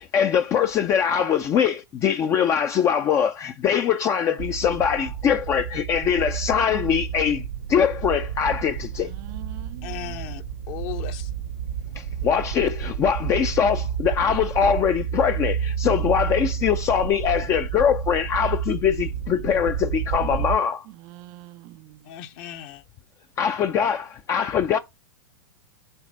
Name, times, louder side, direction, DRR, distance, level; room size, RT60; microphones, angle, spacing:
voice 1, 0.1-9.1 12.0-20.9 23.4-24.8, left 8 dB, 25° left, 0.5 m, -22 dB
sound 1, 4.4-20.6, right 8 dB, 60° right, 0.9 m, -30 dB
voice 2, 8.9-10.2 20.9-22.1, right 17 dB, 35° right, 0.4 m, -44 dB
voice 3, 9.8-11.3 22.0-22.8, left 12 dB, 40° left, 0.8 m, -37 dB
8.0 x 3.2 x 5.3 m
figure-of-eight pair, 100°, 12 cm